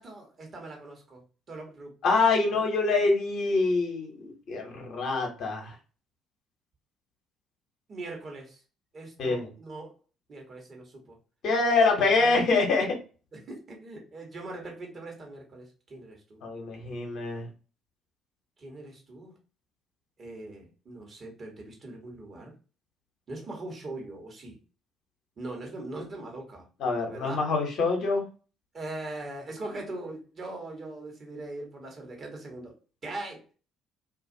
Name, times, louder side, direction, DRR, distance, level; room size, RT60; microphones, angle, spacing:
voice 1, 0.0-1.9 2.5-2.6 7.9-8.6 8.9-9.9 10.3-11.2 12.2-12.4 13.3-16.4 18.6-19.3 20.2-22.5 23.3-24.6 25.4-26.7 27.1-27.4 28.7-32.8 33.0-33.4, right 2 dB, 45° right, 1 dB, 1.1 m, -41 dB
voice 2, 2.0-5.7 9.2-9.5 11.4-12.9 16.4-17.5 26.8-28.2, left 3 dB, 60° left, 1 dB, 0.9 m, -25 dB
2.4 x 2.4 x 2.6 m, 0.35 s
hypercardioid pair, 50°, 0 cm